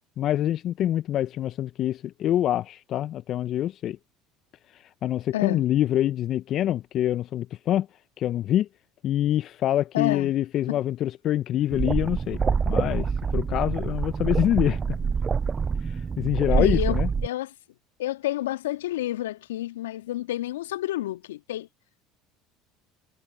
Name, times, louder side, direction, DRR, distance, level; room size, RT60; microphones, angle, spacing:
voice 1, 0.2-4.0 5.0-7.9 8.2-8.7 9.0-14.8 15.8-17.1, left 12 dB, 50° left, 0.9 m, -25 dB
voice 2, 5.3-5.7 9.9-10.3 10.7-10.8 16.5-17.5 18.0-21.7, left 14 dB, 80° left, 2.0 m, -29 dB
sound 1, 11.7-17.3, right 5 dB, 30° right, 0.4 m, -26 dB
hypercardioid pair, 70°, 0 cm